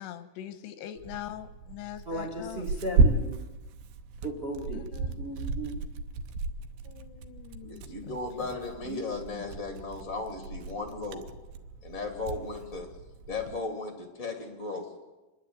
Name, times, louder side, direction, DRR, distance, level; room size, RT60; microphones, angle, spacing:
voice 1, 0.0-2.7 4.7-5.3 6.8-8.2 8.9-9.0 9.3-9.4, left 12 dB, 85° left, 11 dB, 3.1 m, -43 dB
Tearing, 1.0-13.6, right 3 dB, 75° right, 2.8 m, -33 dB
voice 2, 2.0-3.3 4.2-4.8 5.2-5.8, right 1 dB, 35° right, 2 dB, 1.0 m, -35 dB
voice 3, 7.6-11.2 11.8-12.9 13.3-14.9, left 3 dB, 45° left, 5 dB, 1.0 m, -36 dB
28.0 x 11.0 x 8.6 m, 1.1 s
omnidirectional pair, 4.8 m